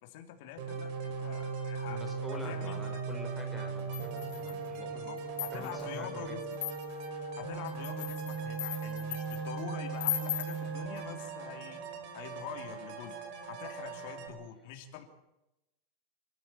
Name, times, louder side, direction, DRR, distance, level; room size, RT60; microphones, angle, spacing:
voice 1, 0.0-2.0 2.4-3.0 4.9-6.4 7.4-11.8 12.1-13.2 13.5-15.0, left 10 dB, 55° left, 4 dB, 3.1 m, -45 dB
sound 1, 0.6-14.3, right 5 dB, 45° right, 4.8 m, -38 dB
voice 2, 1.9-5.1 5.5-6.4, left 2 dB, ahead, 0 dB, 4.0 m, -46 dB
sound 2, 3.9-4.7 5.2-5.9 6.5-7.1 7.7-9.4 10.0-10.6, left 12 dB, 75° left, 5.1 m, -37 dB
28.0 x 13.5 x 8.8 m, 0.92 s
supercardioid pair, 170°, 0 cm